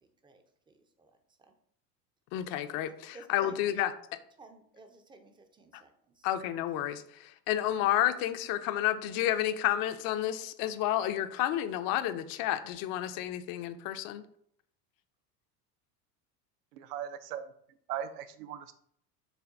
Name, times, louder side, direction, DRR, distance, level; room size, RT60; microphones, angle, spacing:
voice 1, 0.2-1.1 1.5-1.6 3.1-3.5 4.4-6.3, right 3 dB, 10° right, 6 dB, 0.4 m, -55 dB
voice 2, 2.3-3.9 5.7-5.8 6.2-14.2, left 12 dB, 50° left, 11 dB, 0.5 m, -31 dB
voice 3, 16.7-17.5 17.9-18.7, right 10 dB, 75° right, 11 dB, 0.6 m, -38 dB
6.6 x 2.2 x 2.5 m, 0.67 s
hypercardioid pair, 80°, 48 cm